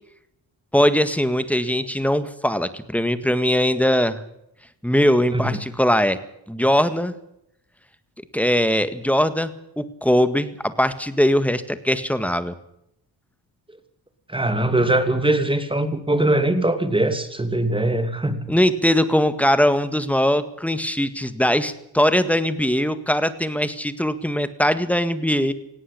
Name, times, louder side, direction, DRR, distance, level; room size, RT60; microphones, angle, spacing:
voice 1, 0.7-4.2 4.8-6.2 6.5-7.1 8.3-9.5 9.8-12.5 18.5-25.5, equal, 5° left, 12 dB, 1.8 m, -20 dB
voice 2, 14.3-18.5, right 1 dB, 10° right, 10 dB, 2.8 m, -21 dB
18.5 x 17.0 x 8.6 m, 0.77 s
cardioid pair, 105°, 40 cm